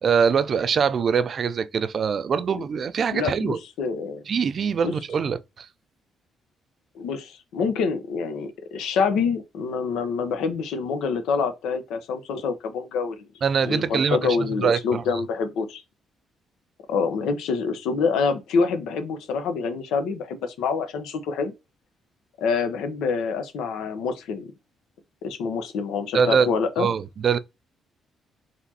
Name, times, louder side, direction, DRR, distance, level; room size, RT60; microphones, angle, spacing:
voice 1, 0.0-3.6 4.3-5.7 13.4-15.0 26.1-26.5 26.8-27.4, right 6 dB, 50° right, 0.4 m, -23 dB
voice 2, 3.1-4.2 4.8-4.9 6.9-13.2 13.6-15.8 16.9-21.5 22.4-24.5 25.2-26.9, left 5 dB, 85° left, 0.8 m, -26 dB
4.1 x 3.0 x 2.8 m
cardioid pair, 90°, 0 cm